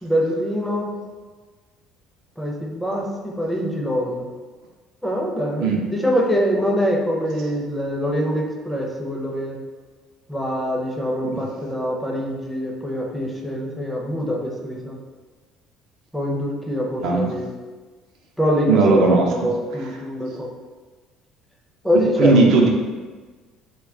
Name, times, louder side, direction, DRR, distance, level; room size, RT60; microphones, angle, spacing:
voice 1, 0.0-0.9 2.4-4.3 5.0-9.6 10.3-15.0 16.1-17.5 18.4-20.5 21.8-22.4, equal, 5° left, -1 dB, 0.6 m, -24 dB
voice 2, 18.7-19.3 22.2-22.7, right 3 dB, 60° right, -1 dB, 0.4 m, -16 dB
2.2 x 2.2 x 3.6 m, 1.4 s
figure-of-eight pair, 55°, 0 cm